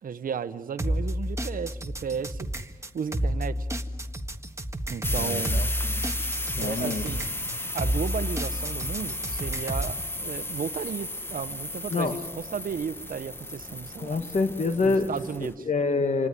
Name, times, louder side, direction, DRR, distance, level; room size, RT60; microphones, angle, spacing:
voice 1, 0.0-2.5 2.9-3.7 4.9-5.7 6.6-7.3 7.7-14.2 14.8-15.7, right 7 dB, 70° right, 11 dB, 1.0 m, -34 dB
sound 1, 0.8-10.0, equal, 20° right, 1.6 m, -31 dB
sound 2, 5.0-15.5, left 1 dB, 15° left, 1.4 m, -34 dB
voice 2, 5.2-5.6 5.9-6.3 6.6-7.0 11.9-12.2 14.0-15.1 15.4-16.3, left 3 dB, 55° left, 7 dB, 2.1 m, -27 dB
28.0 x 19.5 x 9.8 m, 1.3 s
cardioid pair, 85°, 15 cm